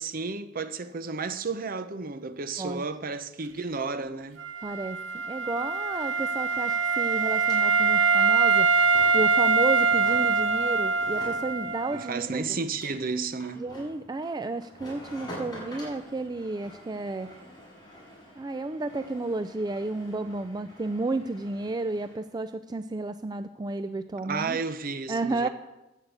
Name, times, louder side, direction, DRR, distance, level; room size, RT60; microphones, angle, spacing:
voice 1, 0.0-4.4 11.9-13.7 24.2-25.5, right 4 dB, 50° right, 0.7 m, -32 dB
Wind instrument woodwind instrument, 4.4-12.1, right 5 dB, 80° right, 0.9 m, -24 dB
voice 2, 4.6-8.7 9.1-12.4 13.6-17.3 18.4-24.6 25.1-25.5, right 2 dB, 20° right, 0.3 m, -32 dB
sound 1, 5.6-22.2, equal, 20° left, 5.7 m, -48 dB
11.0 x 8.1 x 8.1 m
head